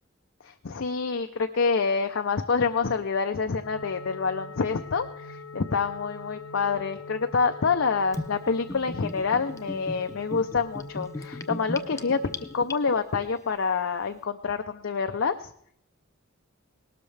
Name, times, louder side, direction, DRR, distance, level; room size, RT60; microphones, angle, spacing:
voice 1, 0.4-12.2 12.5-15.5, left 5 dB, 60° left, 6 dB, 0.6 m, -27 dB
sound 1, 3.6-12.6, left 3 dB, 80° left, 1.1 m, -44 dB
Gurgling / Bathtub (filling or washing), 8.1-13.2, left 1 dB, 15° left, 0.6 m, -37 dB
18.5 x 12.5 x 3.3 m, 0.67 s
head